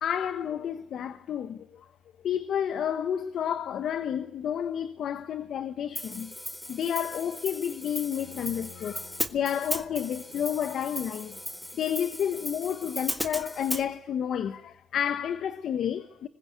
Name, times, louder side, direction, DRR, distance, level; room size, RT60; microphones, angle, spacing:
voice 1, 0.0-1.9 2.2-6.3 6.7-11.4 11.7-16.3, left 9 dB, 70° left, 1.1 m, -30 dB
Hi-hat, 6.0-13.9, left 1 dB, 5° left, 1.6 m, -37 dB
Bowed string instrument, 8.2-12.9, left 6 dB, 85° left, 3.3 m, -54 dB
25.5 x 20.5 x 8.3 m
cardioid pair, 90°, 0 cm